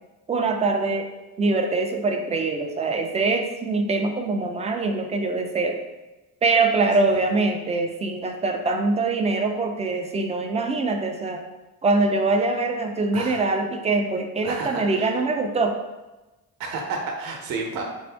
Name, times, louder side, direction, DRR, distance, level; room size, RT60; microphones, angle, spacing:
voice 1, 0.3-1.1 1.4-5.8 6.4-11.4 11.8-15.8, right 3 dB, 20° right, 4 dB, 0.3 m, -23 dB
voice 2, 14.4-15.2 16.6-17.8, right 3 dB, 60° right, 2 dB, 0.8 m, -31 dB
4.1 x 2.6 x 3.3 m, 1.1 s
cardioid pair, 115°, 38 cm